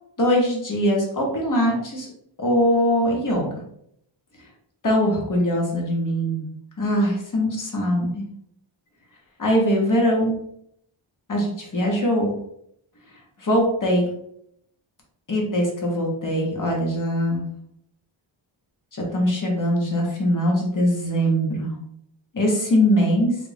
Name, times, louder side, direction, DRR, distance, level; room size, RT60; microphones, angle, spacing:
voice 1, 0.2-2.1 2.4-3.5 4.8-6.5 6.8-8.3 9.4-10.3 11.3-12.3 13.4-14.1 15.3-17.4 19.1-21.7 22.3-23.4, equal, 40° left, -1 dB, 1.1 m, -21 dB
3.4 x 2.4 x 3.4 m, 0.73 s
wide cardioid pair, 95°, 47 cm